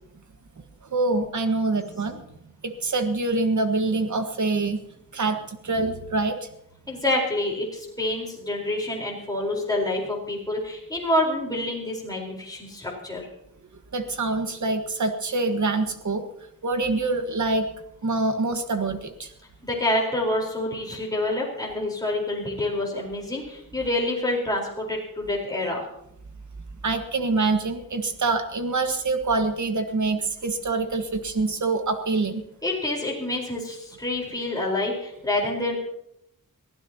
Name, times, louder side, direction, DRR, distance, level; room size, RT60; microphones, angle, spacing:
voice 1, 0.8-2.2 2.6-4.8 5.1-6.5 13.9-16.2 16.6-17.7 18.0-19.3 26.8-32.4, right 3 dB, 55° right, 7 dB, 1.6 m, -25 dB
voice 2, 6.9-13.3 19.6-25.8 32.6-35.7, left 1 dB, 10° left, -2 dB, 4.3 m, -27 dB
23.0 x 15.0 x 2.9 m, 0.78 s
wide cardioid pair, 105°, 34 cm